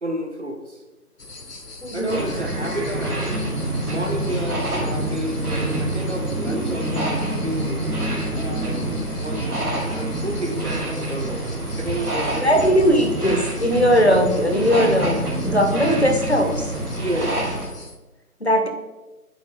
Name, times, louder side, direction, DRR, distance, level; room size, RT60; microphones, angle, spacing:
voice 1, 0.0-0.8 1.9-3.5 3.9-7.9 8.3-13.0 17.0-17.4, right 1 dB, 50° right, 4 dB, 0.7 m, -31 dB
sound 1, 1.2-18.0, left 2 dB, 85° left, 1.0 m, -39 dB
voice 2, 1.8-2.3 12.3-15.2 15.5-16.7 18.4-18.7, equal, 45° left, 4 dB, 0.6 m, -19 dB
sound 2, 2.1-17.7, right 1 dB, 70° right, 1.7 m, -26 dB
8.4 x 3.3 x 3.6 m, 1.1 s
figure-of-eight pair, 165°, 46 cm